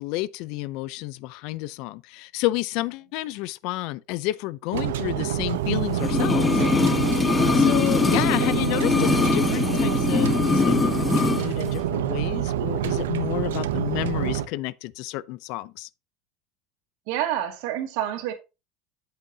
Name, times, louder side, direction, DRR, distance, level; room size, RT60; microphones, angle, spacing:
voice 1, 0.0-6.6 7.5-15.9, left 18 dB, 65° left, 0.5 m, -30 dB
sound 1, 4.7-14.5, right 11 dB, 85° right, 0.7 m, -27 dB
sound 2, 6.0-11.5 11.7-11.8, left 5 dB, 20° left, 0.7 m, -22 dB
voice 2, 7.3-7.7 17.1-18.3, right 11 dB, 70° right, 2.0 m, -29 dB
8.3 x 7.9 x 2.8 m
hypercardioid pair, 95°, 0 cm